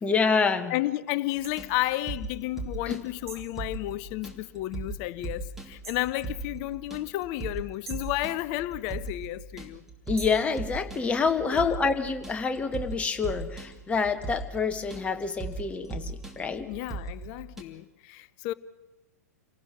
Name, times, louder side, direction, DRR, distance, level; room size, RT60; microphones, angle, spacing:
voice 1, 0.0-0.7 2.9-3.0 10.1-16.7, left 5 dB, 15° left, 1.4 m, -27 dB
voice 2, 0.7-9.8 11.5-11.8 16.6-18.5, left 16 dB, 40° left, 0.6 m, -32 dB
sound 1, 1.4-17.6, right 3 dB, 5° right, 2.6 m, -39 dB
sound 2, 1.4-1.6 3.3-3.6 5.8-6.1 7.8-8.2 10.2-10.5, right 3 dB, 60° right, 4.7 m, -43 dB
28.0 x 18.5 x 6.0 m
figure-of-eight pair, 100°, 9 cm